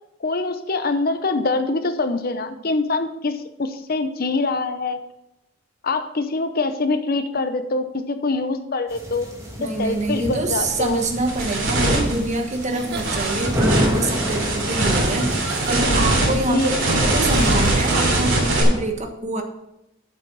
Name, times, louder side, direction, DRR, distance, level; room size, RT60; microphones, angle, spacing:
voice 1, 0.2-5.0 5.8-9.3 9.8-11.0 16.5-16.8, left 3 dB, 50° left, 9 dB, 0.7 m, -24 dB
sound 1, 8.9-15.8, equal, 15° right, 2.3 m, -29 dB
voice 2, 9.6-19.4, right 2 dB, 35° right, 4 dB, 1.3 m, -26 dB
sound 2, 9.8-9.9 10.4-18.6, right 1 dB, 75° right, 3.3 m, -22 dB
Giggle / Chuckle chortle, 12.6-18.1, right 3 dB, 60° right, 1.4 m, -35 dB
9.1 x 7.6 x 5.4 m, 0.85 s
head